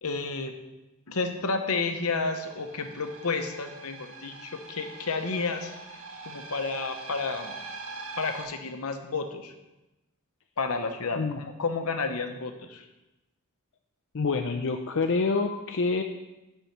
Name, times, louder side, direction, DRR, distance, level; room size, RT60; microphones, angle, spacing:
voice 1, 0.0-0.6 1.1-5.7 6.2-7.5 8.2-9.5 10.6-12.9, left 4 dB, 75° left, 6 dB, 0.9 m, -31 dB
sound 1, 2.4-8.4, right 4 dB, 70° right, 1.7 m, -43 dB
voice 2, 14.1-16.0, left 4 dB, 60° left, 5 dB, 0.6 m, -27 dB
8.5 x 5.6 x 5.9 m, 0.99 s
head